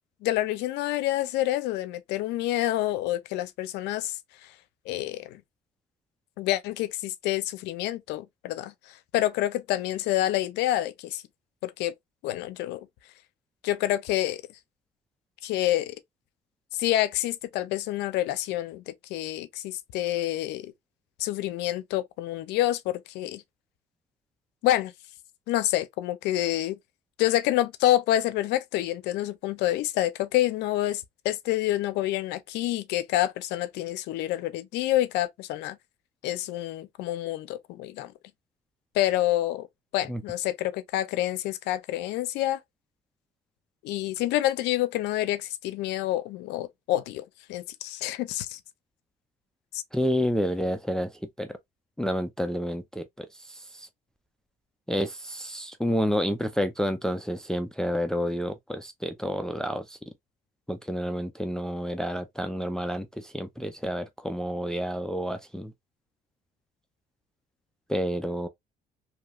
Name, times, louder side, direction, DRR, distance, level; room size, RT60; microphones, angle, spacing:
voice 1, 0.2-4.2 4.9-5.4 6.4-11.2 11.6-11.9 12.2-12.9 13.6-14.4 15.4-15.9 16.8-20.7 21.2-23.4 24.6-24.9 25.5-26.8 27.2-35.8 36.2-38.1 38.9-39.7 39.9-42.6 43.8-48.6 49.7-49.8, left 14 dB, 90° left, 0.5 m, -28 dB
voice 2, 49.9-51.1 51.4-51.6 52.0-53.9 54.9-60.0 60.7-65.7 67.9-68.5, equal, 5° left, 0.4 m, -29 dB
2.9 x 2.7 x 2.3 m
cardioid pair, 110°, 17 cm